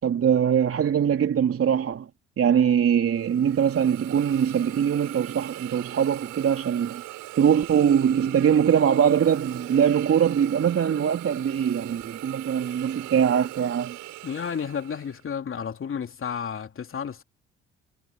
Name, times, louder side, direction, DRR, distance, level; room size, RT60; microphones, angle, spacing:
voice 1, 0.0-2.1 2.4-7.0 7.4-14.0, right 8 dB, 45° right, 3.3 m, -22 dB
Hiss, 3.1-15.2, right 19 dB, 65° right, 5.5 m, -41 dB
voice 2, 14.2-17.2, left 7 dB, 40° left, 3.2 m, -32 dB
hypercardioid pair, 55°, 33 cm